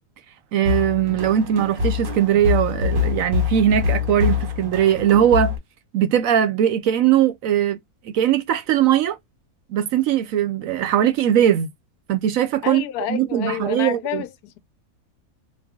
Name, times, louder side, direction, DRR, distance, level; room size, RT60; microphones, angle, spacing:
voice 1, 0.5-5.6 5.9-7.8 8.0-9.2 9.7-11.7 12.1-12.8 13.1-14.2, right 10 dB, 70° right, 0.9 m, -20 dB
sound 1, 0.6-5.6, left 6 dB, 40° right, 0.9 m, -24 dB
voice 2, 12.6-14.6, left 11 dB, 80° left, 1.1 m, -29 dB
3.3 x 2.4 x 3.4 m
omnidirectional pair, 1.6 m